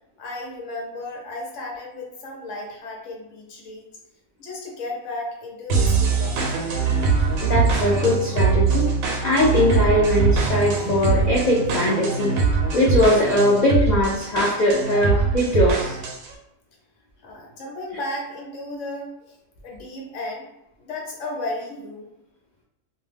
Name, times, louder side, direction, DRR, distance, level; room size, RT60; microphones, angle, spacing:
voice 1, 0.2-3.8 4.4-6.6 17.2-19.4 19.6-20.5 20.8-22.1, left 2 dB, 65° left, -1 dB, 1.1 m, -34 dB
sound 1, 5.7-16.3, right 4 dB, 90° right, 1.0 m, -22 dB
voice 2, 7.4-8.9 9.2-12.3 12.7-16.0, left 1 dB, 90° left, -4 dB, 0.3 m, -20 dB
2.5 x 2.2 x 3.3 m, 0.86 s
omnidirectional pair, 1.4 m